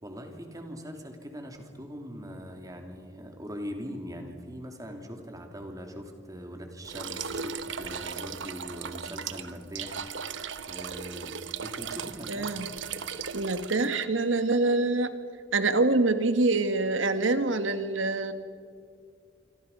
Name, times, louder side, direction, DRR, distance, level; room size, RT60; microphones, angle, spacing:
voice 1, 0.0-10.4 10.6-11.3 11.6-12.6, equal, 20° right, 4 dB, 3.0 m, -41 dB
sound 1, 6.8-14.0, right 6 dB, 70° right, 1.0 m, -37 dB
voice 2, 12.3-12.7 13.3-15.2 15.5-18.3, right 2 dB, 85° right, 10 dB, 1.7 m, -25 dB
27.0 x 26.0 x 5.6 m, 2.2 s
head